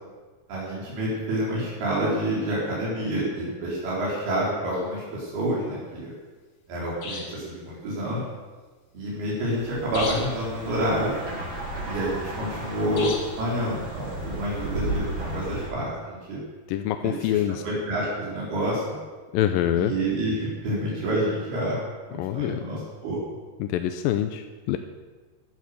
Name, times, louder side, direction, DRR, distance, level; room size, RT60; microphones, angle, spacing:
voice 1, 0.5-6.1 6.7-8.2 8.9-11.2 11.8-16.4 17.0-19.0 19.7-21.8 22.1-23.2, right 1 dB, 85° right, -6 dB, 6.1 m, -28 dB
sound 1, 4.7-4.9 7.0-7.5 9.9-10.4 13.0-13.5, left 3 dB, 40° left, 1.4 m, -35 dB
sound 2, 9.3-15.7, right 1 dB, 30° right, 5.7 m, -34 dB
voice 2, 16.7-17.6 19.3-19.9 22.2-22.6 23.6-24.8, left 11 dB, 80° left, 8 dB, 2.2 m, -25 dB
15.0 x 11.5 x 6.8 m, 1.4 s
omnidirectional pair, 4.4 m